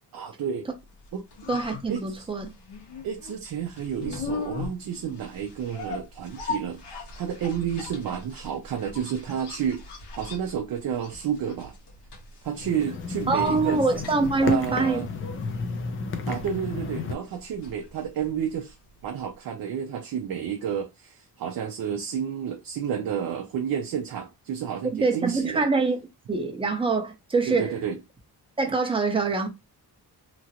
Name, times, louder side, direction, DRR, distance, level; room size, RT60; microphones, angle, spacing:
voice 1, 0.1-0.7 1.1-1.2 1.9-2.3 3.0-11.7 12.4-13.9 14.4-15.1 16.3-18.8 19.0-25.6 27.5-28.0, right 8 dB, 60° right, 0.6 m, -31 dB
Washing Window, 0.9-18.9 19.2-19.3, left 4 dB, 90° left, 1.2 m, -40 dB
voice 2, 1.5-2.5 13.3-15.0 25.0-26.0 26.3-27.7 28.6-29.5, right 4 dB, 15° right, 0.6 m, -24 dB
sound 1, 12.5-17.1, left 4 dB, 30° left, 0.5 m, -32 dB
3.0 x 2.4 x 2.8 m
wide cardioid pair, 140°, 41 cm